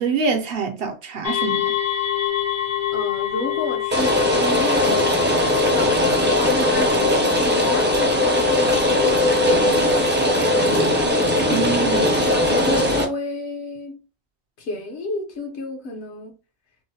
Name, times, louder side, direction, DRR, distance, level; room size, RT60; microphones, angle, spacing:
voice 1, 0.0-1.8 11.5-12.1, right 5 dB, 60° right, 0.7 m, -25 dB
sound 1, 1.2-11.1, left 12 dB, 50° left, 0.5 m, -27 dB
voice 2, 2.9-5.4 5.7-11.1 12.3-14.0 14.6-16.3, left 1 dB, 75° left, 1.1 m, -30 dB
Rain, 3.9-13.0, left 1 dB, 15° right, 0.4 m, -19 dB
3.7 x 2.0 x 2.7 m
omnidirectional pair, 1.2 m